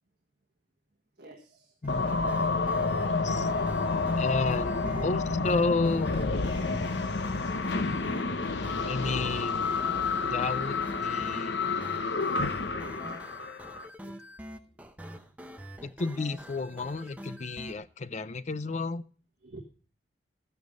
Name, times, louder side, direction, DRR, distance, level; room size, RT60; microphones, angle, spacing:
voice 1, 1.2-1.7 4.8-5.1 6.7-7.0 7.3-8.5 8.8-9.0 10.1-10.6 12.7-12.8 13.3-13.5 14.0-14.1 19.4-19.6, right 2 dB, 60° right, 1 dB, 1.6 m, -46 dB
sound 1, 1.8-17.7, equal, 10° right, 0.8 m, -45 dB
sound 2, 1.9-13.9, left 4 dB, 75° left, 0.9 m, -29 dB
voice 2, 2.9-3.5 4.2-6.1 8.9-9.7 10.3-11.5 15.8-19.0, left 3 dB, 40° left, 16 dB, 0.5 m, -32 dB
13.5 x 9.5 x 5.2 m, 0.40 s
head